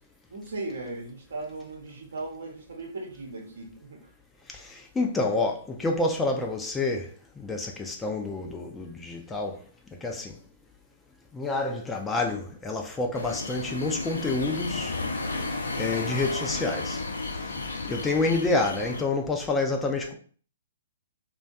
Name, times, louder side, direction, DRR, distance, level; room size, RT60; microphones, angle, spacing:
voice 1, 0.3-4.0, right 2 dB, 70° right, 0.8 m, -37 dB
voice 2, 4.5-9.6 9.9-10.4 11.3-14.9 15.8-17.0 17.8-20.1, left 3 dB, 10° left, 0.4 m, -28 dB
sound 1, 13.1-19.0, left 3 dB, 75° left, 0.4 m, -33 dB
2.5 x 2.2 x 2.3 m
figure-of-eight pair, 125°, 0 cm